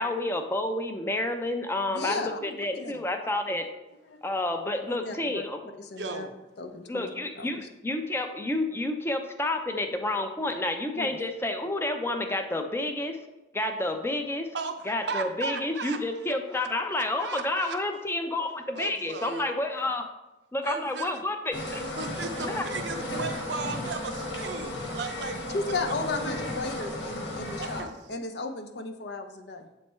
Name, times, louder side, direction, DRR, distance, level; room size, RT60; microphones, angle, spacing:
voice 1, 0.0-3.7 4.2-5.6 6.9-13.2 13.5-14.5 14.9-20.1 20.5-21.8 22.5-22.7, left 2 dB, 15° left, 6 dB, 0.5 m, -30 dB
voice 2, 1.9-3.0 4.1-4.2 4.8-5.4 5.8-6.3 6.6-7.1 7.4-7.6 11.0-11.2 25.5-29.7, left 3 dB, 65° left, 6 dB, 0.6 m, -35 dB
voice 3, 6.0-6.3 14.5-16.2 16.5-16.6 17.0-17.8 18.7-19.5 20.6-21.1 22.0-25.9 27.6-27.9, right 4 dB, 70° right, 6 dB, 0.7 m, -36 dB
sound 1, 21.5-27.8, left 1 dB, 85° left, 1.3 m, -34 dB
7.4 x 3.2 x 4.4 m, 1.0 s
head